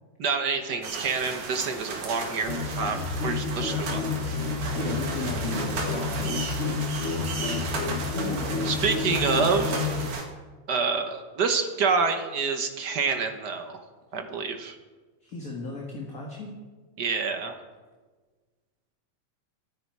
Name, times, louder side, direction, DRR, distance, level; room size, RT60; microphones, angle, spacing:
voice 1, 0.2-4.0 8.6-9.8 10.7-13.8 14.1-14.8 17.0-17.6, right 5 dB, 55° right, 6 dB, 1.2 m, -27 dB
sound 1, 0.8-10.2, right 4 dB, 90° right, 3.7 m, -35 dB
sound 2, 2.5-10.1, left 4 dB, 65° left, 0.6 m, -30 dB
voice 2, 3.2-6.4 8.0-8.8 15.2-16.5, left 2 dB, 30° left, -2 dB, 2.1 m, -36 dB
24.5 x 9.8 x 4.8 m, 1.3 s
omnidirectional pair, 3.4 m